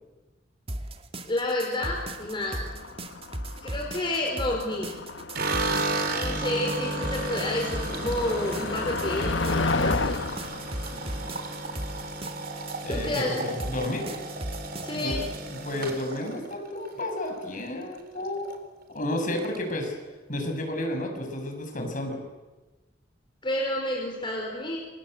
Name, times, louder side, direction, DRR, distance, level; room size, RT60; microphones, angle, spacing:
sound 1, 0.7-15.4, right 1 dB, 30° right, 2.1 m, -37 dB
voice 1, 1.3-2.7 3.6-5.0 6.1-10.2 12.9-13.4 14.8-15.2 23.4-24.8, left 1 dB, 25° left, 0 dB, 4.7 m, -30 dB
Motor vehicle (road), 1.9-12.2, left 3 dB, 80° left, 1.2 m, -33 dB
sound 2, 5.3-17.6 17.9-18.6 18.8-18.9 19.2-19.9, right 2 dB, 55° right, 4.1 m, -34 dB
voice 2, 12.8-14.1 15.0-15.2 15.5-18.6 18.9-19.9 20.3-22.2, left 1 dB, 45° left, 3 dB, 7.0 m, -31 dB
29.0 x 25.5 x 8.1 m, 1.2 s
head